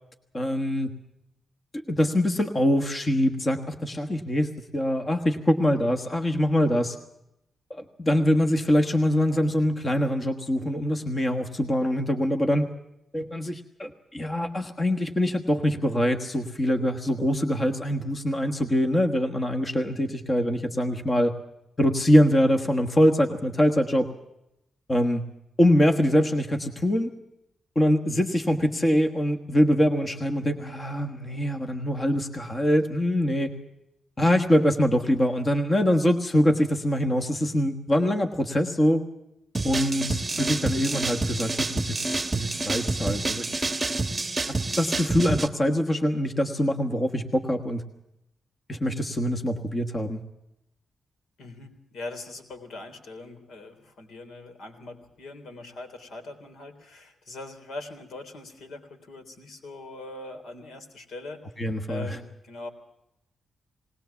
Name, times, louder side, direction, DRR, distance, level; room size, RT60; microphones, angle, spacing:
voice 1, 0.3-0.9 1.7-6.9 7.7-12.6 13.1-21.3 21.8-24.1 24.9-25.2 25.6-27.1 27.7-33.5 34.2-39.0 39.6-43.9 44.4-47.8 48.7-50.2 61.6-62.1, equal, 25° left, 4 dB, 1.4 m, -24 dB
sound 1, 39.5-45.5, right 3 dB, 15° right, 1.3 m, -28 dB
voice 2, 51.4-61.6 61.9-62.7, left 2 dB, 80° left, 6 dB, 3.6 m, -41 dB
20.0 x 19.5 x 7.0 m, 0.85 s
wide cardioid pair, 155°, 0 cm